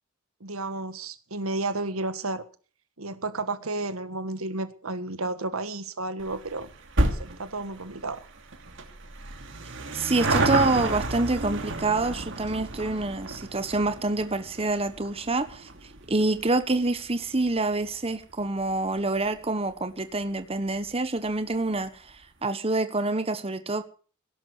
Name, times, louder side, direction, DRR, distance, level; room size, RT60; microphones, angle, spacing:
voice 1, 0.4-2.4 3.0-6.7 7.1-8.3, right 2 dB, 85° right, 1.6 m, -32 dB
sound 1, 6.2-18.9 19.2-19.3 20.2-20.3 20.5-20.6 20.9-21.0, right 2 dB, 65° right, 2.8 m, -32 dB
voice 2, 9.9-15.7 16.1-23.8, right 2 dB, 30° right, 1.2 m, -27 dB
17.0 x 11.5 x 6.6 m
head